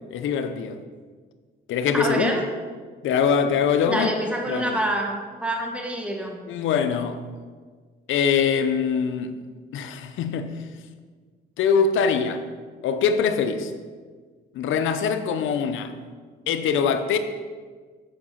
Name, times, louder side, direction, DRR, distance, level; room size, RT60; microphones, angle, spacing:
voice 1, 0.1-0.8 1.7-2.3 3.0-4.1 4.5-4.7 6.5-7.2 8.1-9.4 9.7-10.6 11.6-12.4 12.8-13.7 14.5-15.9 16.5-17.2, left 6 dB, 80° left, 0.7 m, -23 dB
voice 2, 1.9-2.4 3.9-6.4, right 1 dB, 5° right, 1.2 m, -26 dB
7.5 x 4.7 x 5.7 m
cardioid pair, 90°, 20 cm